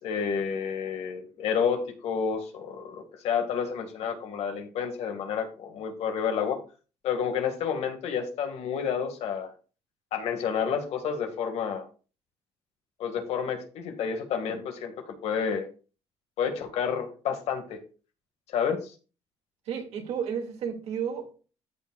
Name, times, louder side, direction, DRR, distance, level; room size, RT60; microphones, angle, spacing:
voice 1, 0.0-6.6 7.0-9.5 10.1-11.9 13.0-15.7 16.4-17.8 18.5-18.9, left 7 dB, 75° left, 1.8 m, -30 dB
voice 2, 19.7-21.4, right 7 dB, 75° right, 2.3 m, -32 dB
13.5 x 6.2 x 2.4 m
cardioid pair, 105°, 11 cm